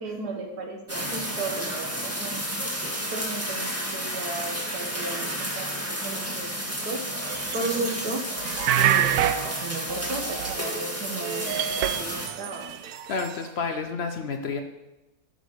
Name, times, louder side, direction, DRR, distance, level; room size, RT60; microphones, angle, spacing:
voice 1, 0.0-2.4 3.1-7.1 7.5-8.4 8.8-12.7, right 3 dB, 55° right, 3 dB, 1.8 m, -34 dB
sound 1, 0.9-12.3, equal, 10° right, 1.5 m, -32 dB
sound 2, 7.3-8.1 8.4-11.0 11.2-13.3, right 11 dB, 75° right, 0.9 m, -28 dB
voice 2, 12.8-14.6, left 4 dB, 85° left, 5 dB, 0.5 m, -30 dB
13.0 x 5.1 x 6.5 m, 1.0 s
omnidirectional pair, 2.1 m